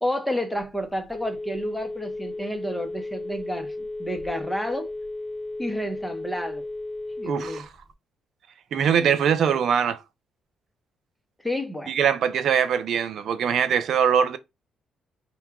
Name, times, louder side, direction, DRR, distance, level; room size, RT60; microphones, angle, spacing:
voice 1, 0.0-4.9 5.6-6.7 7.2-7.7 11.4-11.9, equal, 5° left, 0.7 m, -30 dB
Telephone, 0.6-7.9, left 2 dB, 25° left, 0.4 m, -34 dB
voice 2, 7.2-7.7 8.7-10.0 11.9-14.4, right 7 dB, 65° right, 0.4 m, -22 dB
2.8 x 2.2 x 3.6 m
cardioid pair, 90°, 0 cm